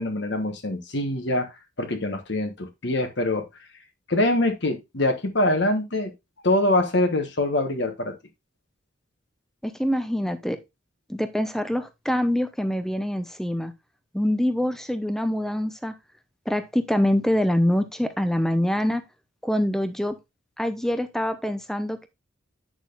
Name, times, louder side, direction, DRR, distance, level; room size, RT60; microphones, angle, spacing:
voice 1, 0.0-3.5 4.1-6.1 6.4-8.1, left 1 dB, 55° left, 1.2 m, -24 dB
voice 2, 9.6-10.6 11.1-13.7 14.1-15.9 16.5-19.0 19.4-20.2 20.6-22.1, equal, ahead, 0.7 m, -25 dB
8.7 x 6.2 x 2.5 m
head